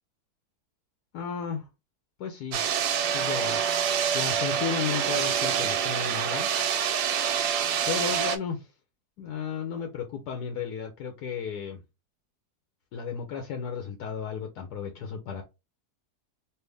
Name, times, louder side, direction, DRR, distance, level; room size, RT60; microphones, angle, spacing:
voice 1, 1.1-1.7 2.2-2.6 3.1-3.6 4.1-6.5 7.9-8.7 9.2-11.8 12.9-15.4, left 6 dB, 80° left, 1.2 m, -34 dB
sound 1, 2.5-8.4, right 8 dB, 90° right, 1.2 m, -26 dB
3.3 x 2.5 x 3.3 m
omnidirectional pair, 1.7 m